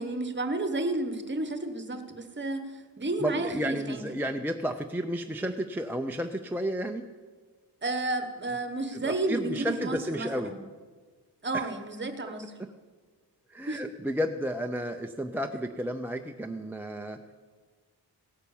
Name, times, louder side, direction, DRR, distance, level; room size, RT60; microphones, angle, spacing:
voice 1, 0.0-4.1 7.8-10.6 11.4-12.5 13.7-13.8, right 2 dB, 30° right, 8 dB, 1.1 m, -32 dB
voice 2, 3.2-7.1 8.9-10.5 11.5-11.7 13.5-17.3, equal, 5° right, 4 dB, 0.4 m, -32 dB
17.0 x 8.9 x 7.0 m, 1.4 s
wide cardioid pair, 175°, 39 cm